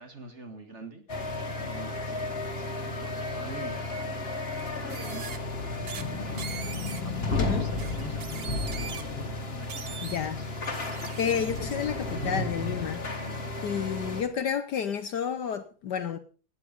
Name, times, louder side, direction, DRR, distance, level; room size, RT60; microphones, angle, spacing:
voice 1, 0.0-4.3 4.8-5.6 6.1-9.0 9.5-10.5 13.2-13.5, right 3 dB, 35° right, 2.0 m, -45 dB
sound 1, 1.1-14.2, left 2 dB, 30° left, 1.9 m, -33 dB
sound 2, 4.7-5.4 5.9-6.0 6.4-7.0 7.8-9.0 9.7-10.3 10.6-11.8, right 7 dB, 75° right, 0.5 m, -41 dB
sound 3, 5.1-9.5, left 5 dB, 90° left, 2.5 m, -38 dB
voice 2, 10.0-10.4 11.2-13.0 13.6-16.2, left 8 dB, 60° left, 1.3 m, -30 dB
16.5 x 9.5 x 5.3 m
omnidirectional pair, 2.3 m